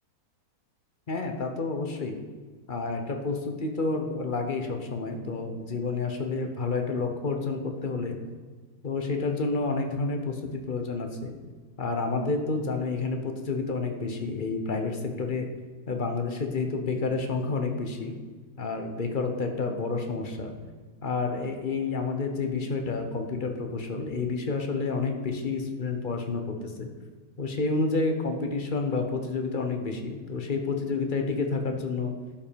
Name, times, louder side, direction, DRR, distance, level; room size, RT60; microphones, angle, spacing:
voice 1, 1.1-2.1 2.7-8.2 8.8-11.3 11.8-15.5 15.9-18.1 18.6-20.5 21.0-26.9 27.4-32.1, left 3 dB, 35° left, 4 dB, 1.0 m, -29 dB
11.5 x 5.5 x 5.1 m, 1.4 s
omnidirectional pair, 1.7 m